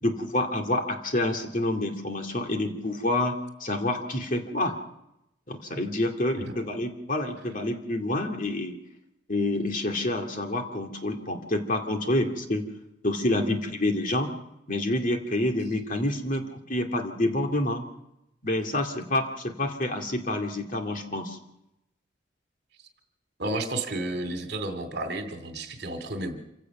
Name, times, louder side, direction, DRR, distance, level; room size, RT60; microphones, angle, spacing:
voice 1, 0.0-4.7 5.5-8.8 9.3-12.6 13.0-14.3 14.7-17.8 18.4-21.4, left 1 dB, 40° left, 3 dB, 2.3 m, -28 dB
voice 2, 23.4-26.4, right 2 dB, 55° right, 7 dB, 2.4 m, -32 dB
26.5 x 16.5 x 6.0 m, 0.86 s
head